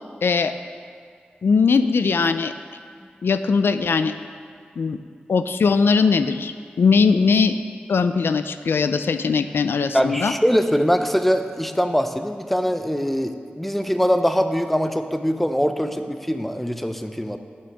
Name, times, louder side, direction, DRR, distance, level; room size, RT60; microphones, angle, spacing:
voice 1, 0.2-0.5 1.4-2.5 3.2-4.1 4.8-5.0 5.3-7.6 7.9-10.3, left 5 dB, 90° left, 10 dB, 0.4 m, -20 dB
voice 2, 9.9-17.4, equal, 5° left, 8 dB, 0.7 m, -22 dB
9.7 x 6.4 x 7.9 m, 2.2 s
wide cardioid pair, 65°, 4 cm